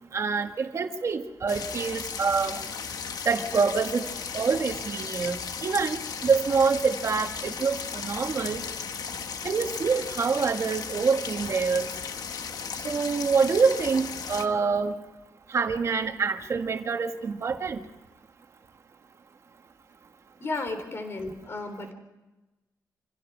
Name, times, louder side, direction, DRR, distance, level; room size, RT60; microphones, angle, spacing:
voice 1, 0.1-2.6 3.2-4.1 4.3-8.6 9.4-11.9 12.8-14.9 15.5-17.8, right 5 dB, 50° right, 6 dB, 1.5 m, -26 dB
sound 1, 1.5-14.5, left 6 dB, 75° left, 1.2 m, -36 dB
voice 2, 20.4-21.9, left 3 dB, 40° left, 6 dB, 3.6 m, -33 dB
26.5 x 16.0 x 6.0 m, 1.1 s
wide cardioid pair, 165°, 7 cm